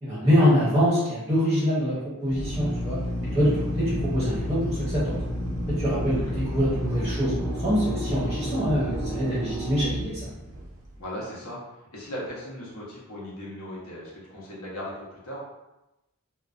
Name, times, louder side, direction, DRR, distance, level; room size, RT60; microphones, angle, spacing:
voice 1, 0.0-2.0 2.2-3.0 3.3-5.2 5.8-10.2, equal, 15° right, -10 dB, 0.7 m, -24 dB
Drill, 2.2-10.9, equal, 85° right, 0.6 m, -31 dB
voice 2, 10.9-11.6 11.9-15.4, equal, 70° left, -6 dB, 0.9 m, -37 dB
2.3 x 2.1 x 2.4 m, 0.96 s
head